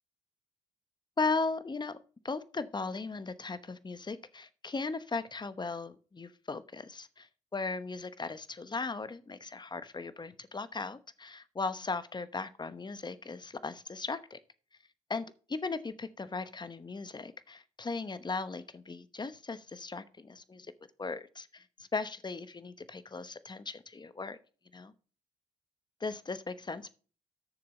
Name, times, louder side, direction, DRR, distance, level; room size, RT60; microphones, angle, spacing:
voice 1, 1.2-2.0 2.2-14.4 15.1-20.7 21.0-24.4 24.7-24.9 26.0-26.9, left 4 dB, 30° left, 13 dB, 1.0 m, -37 dB
10.0 x 6.7 x 4.1 m, 0.39 s
hypercardioid pair, 45°, 16 cm